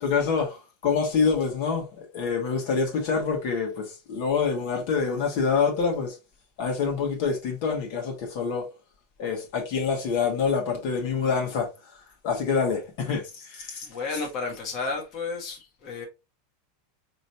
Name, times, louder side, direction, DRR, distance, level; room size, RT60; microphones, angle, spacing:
voice 1, 0.0-6.1 6.6-8.6 9.2-11.7 12.2-13.9, left 5 dB, 65° left, 1.6 m, -26 dB
voice 2, 13.8-16.0, left 4 dB, 40° left, 1.4 m, -32 dB
4.0 x 3.1 x 2.8 m
hypercardioid pair, 115°, 0 cm